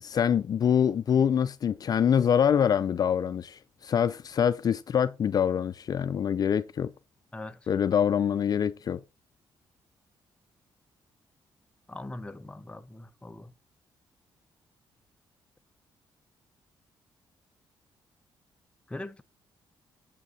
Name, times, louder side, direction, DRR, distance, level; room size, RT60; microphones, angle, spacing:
voice 1, 0.0-6.9 7.7-9.0, left 8 dB, 50° left, 0.4 m, -25 dB
voice 2, 11.9-13.5 18.9-19.2, left 2 dB, 15° left, 0.6 m, -41 dB
7.6 x 7.4 x 4.0 m
cardioid pair, 105°, 9 cm